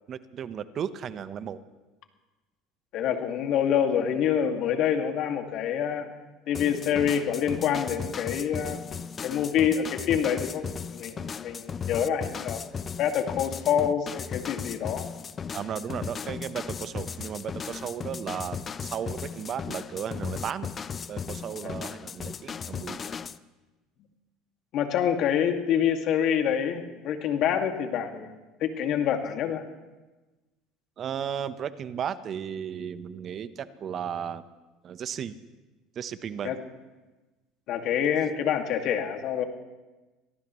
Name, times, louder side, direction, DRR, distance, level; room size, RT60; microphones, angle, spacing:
voice 1, 0.0-1.6 15.5-20.7 21.1-23.1 31.0-34.5 34.8-35.4 35.9-36.5, right 8 dB, 45° right, 12 dB, 1.0 m, -35 dB
voice 2, 2.9-6.1 6.5-8.8 9.2-10.6 10.9-12.7 13.0-15.1 24.7-28.3 28.6-29.6 36.4-36.6 37.7-39.4, left 8 dB, 60° left, 4 dB, 2.2 m, -26 dB
sound 1, 6.5-23.4, left 6 dB, 35° left, 0.7 m, -36 dB
25.0 x 18.0 x 3.2 m, 1.2 s
hypercardioid pair, 85°, 0 cm